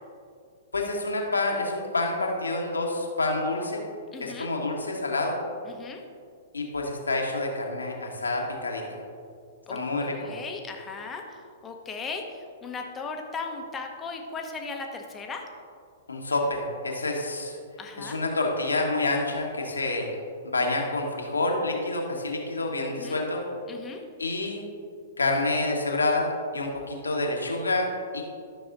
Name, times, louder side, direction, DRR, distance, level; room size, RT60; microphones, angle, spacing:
voice 1, 0.7-3.8 4.2-5.4 6.5-9.0 9.7-10.3 16.1-17.6 18.0-20.1 20.4-23.4 24.2-24.7 25.2-28.2, left 2 dB, 85° left, 0 dB, 1.3 m, -28 dB
voice 2, 4.1-4.5 5.7-6.0 9.7-15.4 17.8-18.2 23.0-23.2 23.7-24.0, left 4 dB, 20° left, 3 dB, 1.0 m, -37 dB
12.5 x 6.1 x 2.6 m, 2.3 s
figure-of-eight pair, 110°, 0 cm